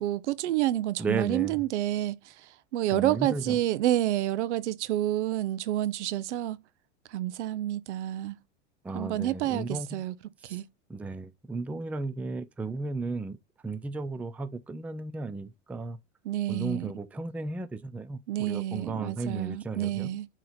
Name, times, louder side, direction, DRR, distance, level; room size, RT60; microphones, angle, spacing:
voice 1, 0.0-6.6 7.1-8.4 8.9-10.1 10.4-10.6 16.2-16.9 18.3-20.3, right 13 dB, 80° right, 0.7 m, -29 dB
voice 2, 1.0-1.6 2.9-3.6 8.8-10.0 10.4-10.6 10.9-13.4 13.6-16.0 16.5-20.1, right 3 dB, 5° right, 0.4 m, -34 dB
7.7 x 3.1 x 3.9 m
hypercardioid pair, 105°, 35 cm